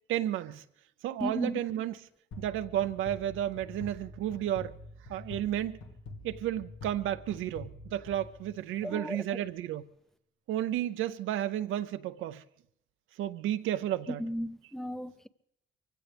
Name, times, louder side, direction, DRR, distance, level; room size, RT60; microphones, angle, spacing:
voice 1, 0.1-0.6 1.0-1.9 2.4-4.8 5.1-5.8 6.2-9.8 10.5-12.4 13.2-14.2, right 12 dB, 85° right, 0.6 m, -32 dB
voice 2, 1.2-1.6 8.8-9.4 14.1-15.3, equal, ahead, 0.5 m, -35 dB
sound 1, 2.3-8.9, left 2 dB, 80° left, 1.6 m, -47 dB
23.5 x 16.0 x 3.4 m
cardioid pair, 90°, 20 cm